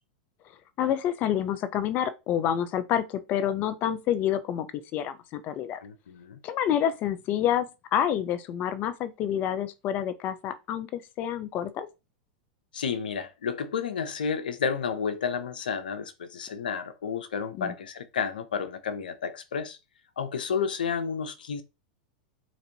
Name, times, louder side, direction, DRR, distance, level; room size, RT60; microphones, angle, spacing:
voice 1, 0.8-4.7 4.9-5.8 6.4-11.9 17.6-17.7, left 10 dB, 40° left, 0.5 m, -28 dB
voice 2, 5.8-6.4 12.7-19.8 20.2-21.6, left 6 dB, 85° left, 0.6 m, -31 dB
4.0 x 2.6 x 2.7 m
hypercardioid pair, 115°, 5 cm